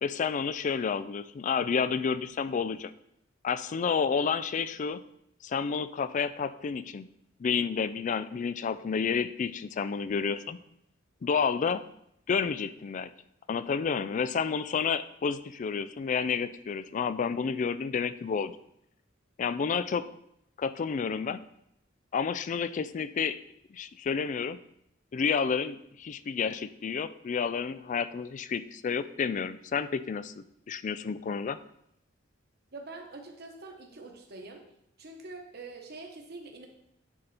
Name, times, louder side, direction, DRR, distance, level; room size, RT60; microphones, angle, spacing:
voice 1, 0.0-2.9 3.4-5.0 5.4-7.1 7.4-10.6 11.2-11.8 12.3-13.1 13.5-18.6 19.4-20.0 20.6-21.4 22.1-23.4 23.7-24.6 25.1-31.6, left 6 dB, 40° left, 14 dB, 0.3 m, -30 dB
voice 2, 32.7-34.6 35.0-36.7, right 3 dB, 55° right, 2 dB, 1.2 m, -45 dB
9.9 x 4.1 x 4.3 m, 0.75 s
head